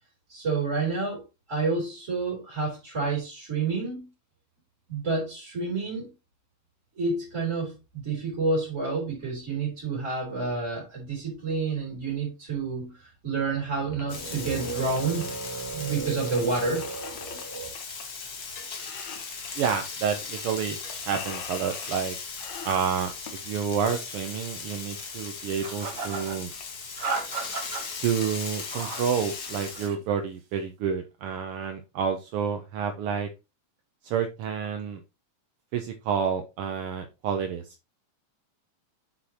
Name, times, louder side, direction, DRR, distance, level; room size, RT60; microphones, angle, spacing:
voice 1, 0.3-1.2 1.5-4.1 4.9-6.1 6.9-7.8 8.0-17.7, right 4 dB, 25° right, -4 dB, 3.3 m, -29 dB
sound 1, 13.9-14.0 14.5-15.2 16.4-18.0 18.3-18.5 18.8-19.7 20.4-20.5 20.8-22.0 22.4-23.5 25.1-25.2 25.8-25.9 26.1-26.2 26.6-26.8 27.3-27.7, left 7 dB, 70° left, 2.4 m, -43 dB
Frying (food), 14.1-29.9, left 5 dB, 45° left, 1.5 m, -38 dB
voice 2, 19.5-20.8 21.1-22.2 22.6-23.1 23.4-26.5 28.0-33.3 34.0-35.0 35.7-37.7, right 7 dB, 75° right, 6 dB, 1.3 m, -29 dB
sound 2, 25.6-26.4 27.0-27.8 28.5-29.1 29.4-30.0, right 4 dB, 50° right, 0.9 m, -34 dB
7.6 x 6.3 x 2.9 m, 0.26 s
omnidirectional pair, 3.3 m